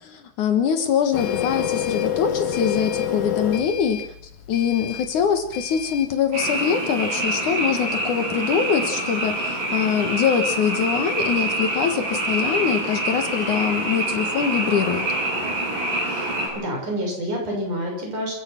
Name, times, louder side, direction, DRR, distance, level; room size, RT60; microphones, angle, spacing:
voice 1, 0.0-4.0 4.5-15.1, left 7 dB, 65° left, 7 dB, 2.8 m, -23 dB
Printer, 1.1-6.1, left 9 dB, 85° left, 3.3 m, -28 dB
Frog, 6.3-16.5, right 2 dB, 75° right, 9.0 m, -26 dB
voice 2, 16.5-18.4, equal, 60° right, 0 dB, 8.3 m, -28 dB
28.0 x 16.0 x 5.9 m, 0.63 s
omnidirectional pair, 4.1 m